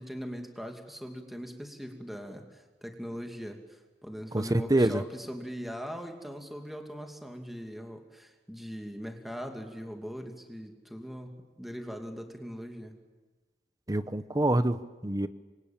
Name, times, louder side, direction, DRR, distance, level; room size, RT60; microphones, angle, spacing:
voice 1, 0.0-11.3 11.6-12.9, equal, ahead, 4 dB, 2.5 m, -40 dB
voice 2, 4.3-5.0 13.9-15.3, right 1 dB, 20° right, 12 dB, 0.9 m, -26 dB
27.0 x 24.0 x 8.8 m, 1.3 s
head